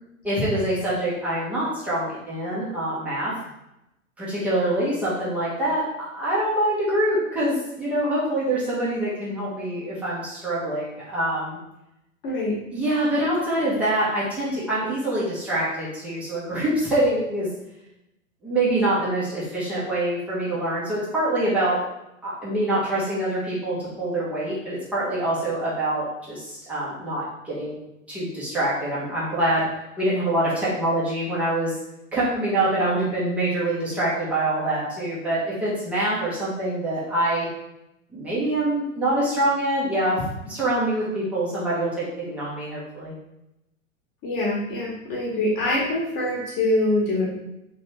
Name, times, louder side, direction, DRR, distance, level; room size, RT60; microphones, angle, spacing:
voice 1, 0.2-3.3 4.2-11.6 12.7-17.5 18.4-21.8 22.2-27.8 28.1-29.7 30.0-31.7 32.1-37.5 38.1-40.2 40.4-43.1, right 1 dB, 5° right, -9 dB, 0.3 m, -25 dB
voice 2, 12.2-12.6 44.2-47.3, left 1 dB, 35° left, -4 dB, 0.8 m, -24 dB
3.1 x 2.5 x 3.0 m, 0.88 s
figure-of-eight pair, 100°, 41 cm